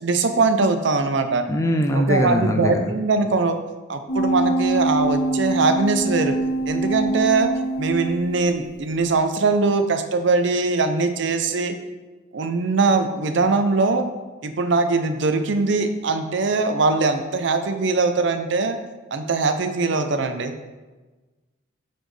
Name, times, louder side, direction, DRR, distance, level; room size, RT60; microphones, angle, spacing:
voice 1, 0.0-1.5 1.9-3.6 3.9-6.3 6.7-7.5 7.8-11.7 12.3-14.0 14.4-18.8 19.1-20.5, right 3 dB, 65° right, 8 dB, 0.5 m, -21 dB
voice 2, 1.5-3.0, equal, 15° left, 4 dB, 0.4 m, -21 dB
sound 1, 4.1-8.6 9.0-9.1, right 2 dB, 55° left, 1.3 m, -24 dB
7.7 x 4.3 x 3.2 m, 1.2 s
head